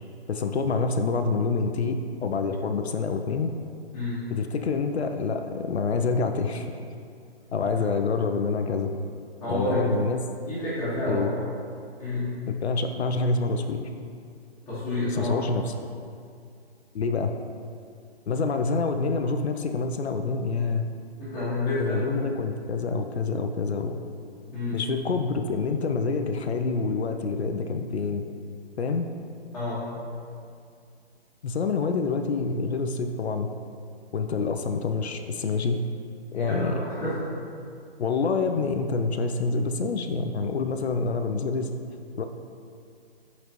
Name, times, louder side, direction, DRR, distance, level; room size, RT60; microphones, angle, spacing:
voice 1, 0.3-3.5 4.3-6.7 7.5-8.9 9.5-10.3 11.1-11.3 12.5-13.9 15.1-15.7 16.9-17.3 18.3-20.9 21.8-24.0 24.7-28.2 28.8-29.0 31.4-33.5 34.1-35.8 36.3-36.8 38.0-41.7 42.2-42.3, left 4 dB, 80° left, 6 dB, 0.6 m, -27 dB
voice 2, 9.4-9.9 10.5-11.2 12.0-12.3 14.7-15.3 21.2-22.0 24.5-24.8 29.5-29.9 36.3-37.1, left 1 dB, 5° left, -20 dB, 1.7 m, -29 dB
10.0 x 4.1 x 3.1 m, 2.3 s
hypercardioid pair, 160°, 32 cm